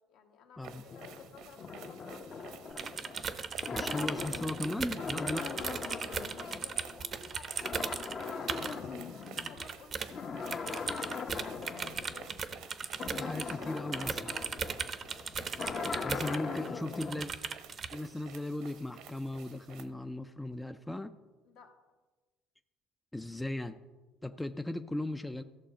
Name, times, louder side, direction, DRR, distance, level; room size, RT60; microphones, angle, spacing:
voice 1, 0.1-2.6 5.6-12.3 14.8-15.0 21.4-21.7, left 6 dB, 70° left, 2 dB, 1.7 m, -55 dB
sound 1, 0.6-19.9, right 7 dB, 75° right, 1.0 m, -53 dB
sound 2, 0.9-7.3 7.6-9.6 10.1-17.2, left 5 dB, 40° left, 0.8 m, -40 dB
sound 3, 2.7-8.8 9.2-10.1 10.5-16.7 17.0-18.0, right 6 dB, 35° right, 0.7 m, -37 dB
voice 2, 3.7-5.5 13.2-14.4 16.0-17.3 17.9-21.1 23.1-23.7 24.2-25.4, left 1 dB, 5° left, 9 dB, 0.4 m, -37 dB
14.0 x 6.5 x 5.1 m, 1.3 s
cardioid pair, 115°, 0 cm